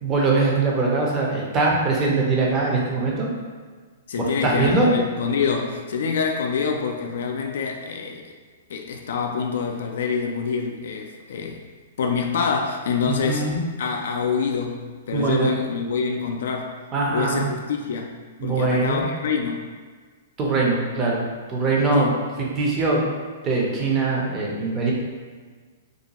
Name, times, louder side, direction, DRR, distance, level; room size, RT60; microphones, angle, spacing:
voice 1, 0.0-3.3 4.2-4.9 13.1-13.6 15.1-15.5 16.9-17.4 18.4-19.0 20.4-21.2 21.5-22.1 22.6-23.0 23.4-24.9, right 3 dB, 25° right, -3 dB, 0.6 m, -22 dB
voice 2, 4.1-8.3 8.7-11.6 12.0-16.8 17.1-18.1 18.4-19.7 21.9-22.1, left 5 dB, 70° left, 3 dB, 0.3 m, -26 dB
2.5 x 2.2 x 2.8 m, 1.5 s
hypercardioid pair, 140°, 0 cm